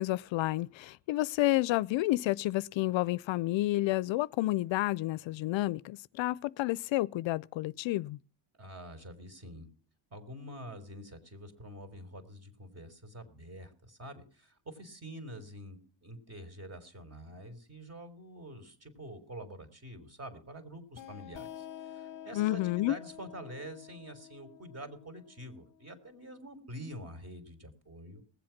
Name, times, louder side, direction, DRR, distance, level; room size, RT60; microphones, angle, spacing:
voice 1, 0.0-8.2 22.3-23.0, left 17 dB, 65° left, 0.5 m, -30 dB
voice 2, 8.6-9.7 10.1-28.2, right 1 dB, 30° right, 3.7 m, -46 dB
sound 1, 20.9-26.3, left 10 dB, 40° left, 0.9 m, -49 dB
19.5 x 7.7 x 5.8 m
cardioid pair, 95°, 50 cm